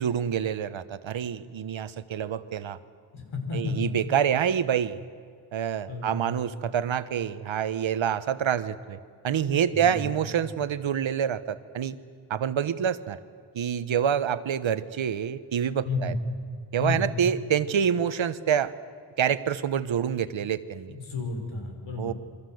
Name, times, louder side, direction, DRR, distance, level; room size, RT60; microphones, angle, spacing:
voice 1, 0.0-2.8 3.5-5.0 5.5-9.0 9.2-11.9 12.3-13.2 13.5-16.1 16.7-18.7 19.2-20.9 22.0-22.1, right 8 dB, 80° right, 13 dB, 1.2 m, -27 dB
voice 2, 3.1-3.7 5.9-6.2 9.7-10.1 15.8-16.1 16.8-17.1 20.9-22.1, left 3 dB, 80° left, 3 dB, 5.9 m, -32 dB
28.5 x 24.5 x 7.9 m, 2.2 s
wide cardioid pair, 145°, 46 cm